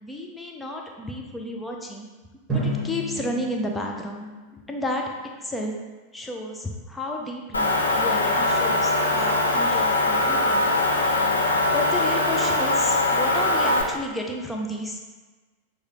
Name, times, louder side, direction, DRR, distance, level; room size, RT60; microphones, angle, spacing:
voice 1, 0.0-2.1 2.5-4.3 4.7-5.0 5.4-5.7 6.1-10.7 11.7-15.0, left 1 dB, 10° left, 0 dB, 0.6 m, -31 dB
Drum, 2.5-5.2, right 1 dB, 15° right, 1.4 m, -32 dB
Motor vehicle (road) / Engine, 7.5-13.8, left 2 dB, 75° left, 0.5 m, -22 dB
6.4 x 2.3 x 2.9 m, 1.3 s
figure-of-eight pair, 90°, 0 cm